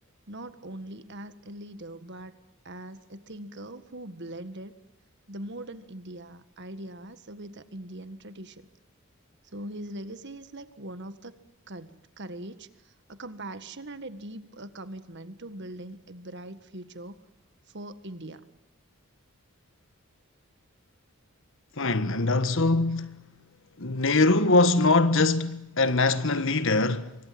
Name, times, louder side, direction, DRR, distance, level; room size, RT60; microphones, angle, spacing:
voice 1, 0.3-2.3 2.7-4.7 5.3-8.7 9.5-11.4 11.7-12.7 13.1-17.2 17.7-18.5, right 1 dB, 50° right, 1.7 m, -41 dB
voice 2, 21.8-23.2 23.8-27.2, left 3 dB, 60° left, 1.5 m, -23 dB
27.5 x 24.0 x 7.8 m
head